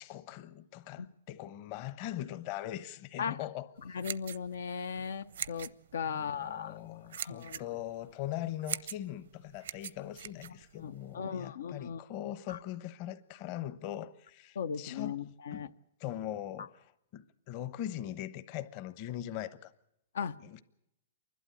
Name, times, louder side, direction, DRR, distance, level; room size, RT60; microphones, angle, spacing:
voice 1, 0.0-4.0 6.1-15.7 16.0-16.9 17.1-19.7 20.4-20.6, left 12 dB, 40° left, 1.0 m, -41 dB
voice 2, 3.8-6.8 7.2-7.6 10.8-12.0 12.5-12.6 14.5-15.7 16.6-16.7 20.1-20.4, left 6 dB, 85° left, 0.8 m, -37 dB
sound 1, 3.8-11.1, right 9 dB, 75° right, 0.7 m, -43 dB
29.0 x 12.0 x 8.5 m
hypercardioid pair, 150°, 0 cm